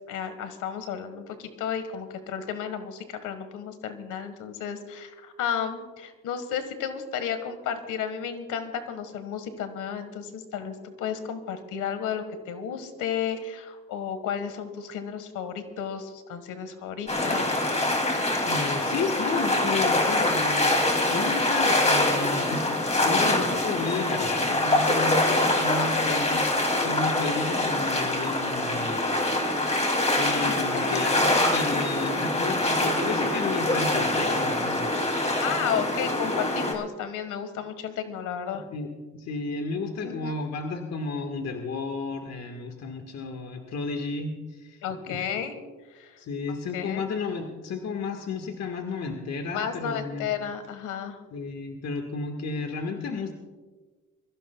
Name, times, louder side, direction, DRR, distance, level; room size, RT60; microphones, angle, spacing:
voice 1, 0.1-17.5 25.8-26.2 30.4-30.5 30.9-31.0 35.4-38.6 40.0-40.3 44.8-45.5 45.9-46.2 46.7-47.0 49.5-51.2, left 8 dB, 85° left, 9 dB, 1.5 m, -33 dB
sound 1, 17.1-36.7, left 1 dB, 20° left, 2.7 m, -24 dB
voice 2, 18.4-26.5 26.8-29.0 30.1-35.0 38.7-44.8 45.1-45.2 46.2-50.3 51.3-53.3, left 4 dB, 60° left, 4 dB, 1.6 m, -32 dB
24.0 x 15.0 x 2.3 m, 1.3 s
cardioid pair, 90°, 30 cm